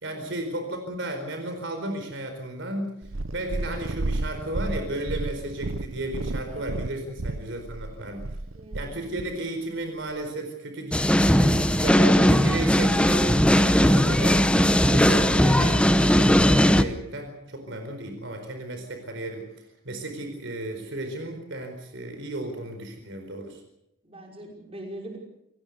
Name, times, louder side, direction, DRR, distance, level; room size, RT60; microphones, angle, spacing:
voice 1, 0.0-3.0 3.3-8.3 8.7-14.5 14.8-23.6, right 1 dB, 60° right, 5 dB, 4.6 m, -34 dB
Purr, 3.0-9.3 10.1-10.2, right 2 dB, 85° right, 1.0 m, -32 dB
voice 2, 8.6-8.9 24.0-25.2, right 1 dB, 30° right, 1 dB, 5.7 m, -41 dB
sound 1, 10.9-16.8, equal, 5° left, 0.9 m, -19 dB
28.5 x 18.5 x 6.8 m, 0.80 s
head